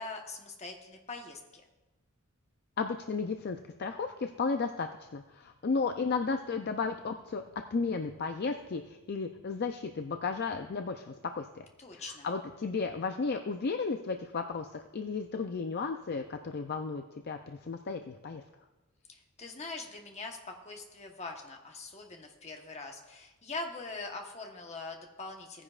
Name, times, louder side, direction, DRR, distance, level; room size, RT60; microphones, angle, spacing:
voice 1, 0.0-1.6 11.8-12.3 19.1-25.6, left 3 dB, 30° left, 2 dB, 1.1 m, -42 dB
voice 2, 2.8-7.4 7.7-11.6 11.9-18.4, left 4 dB, 45° left, 6 dB, 0.4 m, -34 dB
16.5 x 9.9 x 2.4 m, 1.1 s
head